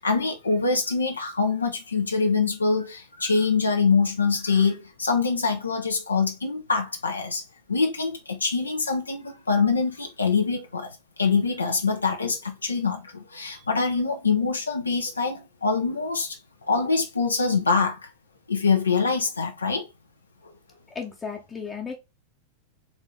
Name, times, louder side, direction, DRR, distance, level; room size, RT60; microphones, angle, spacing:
voice 1, 0.0-7.4 7.7-10.9 11.2-18.1 18.5-19.9, left 4 dB, 75° left, 0.7 m, -24 dB
voice 2, 20.9-22.0, left 6 dB, 15° left, 0.8 m, -34 dB
4.0 x 3.6 x 3.2 m
figure-of-eight pair, 90°, 0 cm